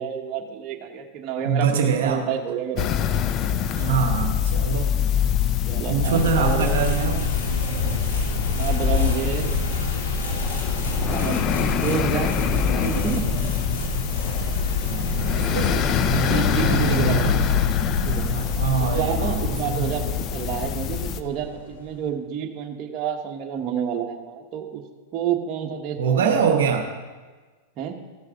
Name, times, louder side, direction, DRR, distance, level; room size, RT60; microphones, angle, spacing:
voice 1, 0.0-2.8 3.8-4.0 5.7-6.8 7.8-8.0 8.6-9.5 11.1-13.2 15.8-15.9 16.3-17.3 18.0-18.3 18.8-24.8 25.1-26.2 27.8-28.0, right 8 dB, 40° right, 2 dB, 1.4 m, -29 dB
voice 2, 1.4-2.2 3.7-4.9 5.9-7.3 14.9-17.4 18.2-19.4 19.7-19.9 26.0-26.9, right 6 dB, 75° right, 4 dB, 1.0 m, -24 dB
sound 1, 2.8-21.2, left 9 dB, 40° left, 0.6 m, -25 dB
sound 2, 6.0-22.1, equal, 90° left, 2.5 m, -29 dB
15.0 x 6.4 x 5.3 m, 1.4 s
hypercardioid pair, 105°, 0 cm